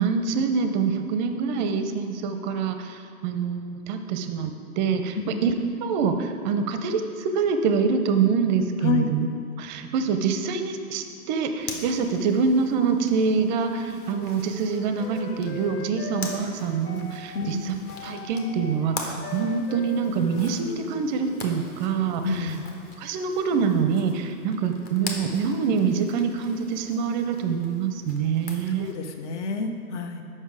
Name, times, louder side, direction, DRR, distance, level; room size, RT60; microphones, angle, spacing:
voice 1, 0.0-9.3 9.6-17.8 18.0-22.5 23.0-28.9, right 5 dB, 30° right, 7 dB, 0.5 m, -25 dB
Zipper (clothing), 11.6-28.9, left 2 dB, 20° left, 0.8 m, -42 dB
Wind instrument woodwind instrument, 14.0-21.5, left 5 dB, 85° left, 0.7 m, -41 dB
voice 2, 22.2-22.7 28.8-30.2, left 5 dB, 50° left, 6 dB, 0.8 m, -28 dB
7.1 x 5.5 x 4.7 m, 2.4 s
hypercardioid pair, 115°, 45 cm